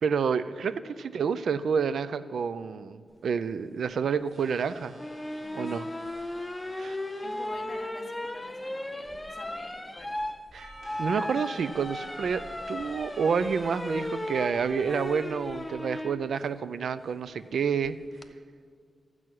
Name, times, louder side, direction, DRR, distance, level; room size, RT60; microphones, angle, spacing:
voice 1, 0.0-5.0 5.5-5.9 6.8-7.0 10.5-10.7 11.0-12.4 12.7-18.0, right 6 dB, 85° right, 14 dB, 0.4 m, -29 dB
sound 1, 4.3-7.5 10.8-14.5, right 1 dB, 60° right, 3.6 m, -54 dB
sound 2, 5.0-16.2 17.8-18.3, left 1 dB, 10° left, 0.5 m, -36 dB
voice 2, 7.2-10.2, left 2 dB, 45° left, 1 dB, 1.6 m, -48 dB
Percussion / Church bell, 10.6-15.1, right 1 dB, 40° right, 3.8 m, -49 dB
13.5 x 6.1 x 9.4 m, 2.1 s
wide cardioid pair, 170°, 0 cm